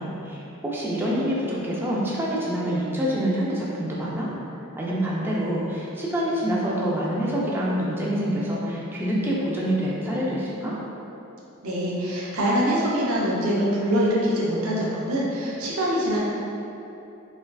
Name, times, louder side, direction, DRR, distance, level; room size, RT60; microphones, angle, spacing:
voice 1, 0.0-4.3 4.8-10.7, equal, 10° right, -6 dB, 0.3 m, -26 dB
voice 2, 11.6-16.2, equal, 70° right, -5 dB, 0.6 m, -24 dB
3.3 x 2.4 x 2.2 m, 2.9 s
head